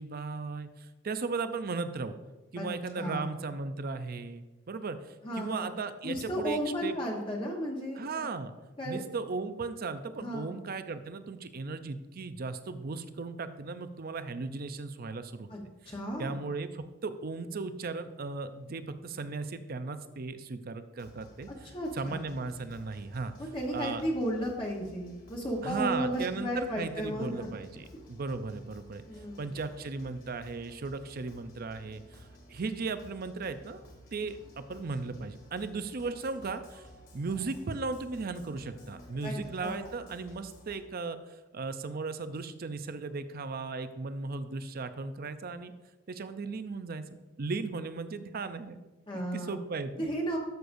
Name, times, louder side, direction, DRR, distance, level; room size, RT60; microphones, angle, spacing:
voice 1, 0.0-2.2 2.5-7.0 8.0-8.5 8.8-15.5 16.2-23.3 23.7-24.0 25.6-29.0 29.4-33.8 34.1-36.9 37.1-45.7 46.1-48.8 49.1-50.1, right 4 dB, 50° right, 11 dB, 0.5 m, -36 dB
voice 2, 3.0-3.3 5.2-5.7 6.0-8.2 8.8-9.0 10.2-10.5 15.5-15.6 15.9-16.4 21.6-22.3 23.4-27.5 29.1-29.5 34.2-34.3 39.2-39.8 49.1-49.6 50.0-50.4, equal, 25° left, -2 dB, 1.1 m, -34 dB
sound 1, 21.0-40.8, equal, 50° left, 2.0 m, -54 dB
12.5 x 6.6 x 2.6 m, 1.1 s
head